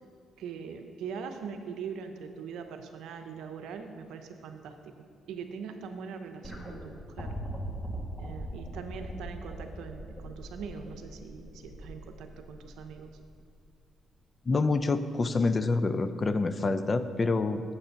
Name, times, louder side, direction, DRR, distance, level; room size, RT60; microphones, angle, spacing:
voice 1, 0.4-4.9 5.3-7.3 8.2-13.1, right 6 dB, 85° right, 6 dB, 0.7 m, -42 dB
sound 1, 6.4-13.6 14.7-14.8, equal, 15° left, 1.5 m, -41 dB
voice 2, 14.5-17.6, left 3 dB, 35° left, 11 dB, 0.5 m, -27 dB
7.3 x 6.7 x 5.7 m, 2.2 s
cardioid pair, 90°, 0 cm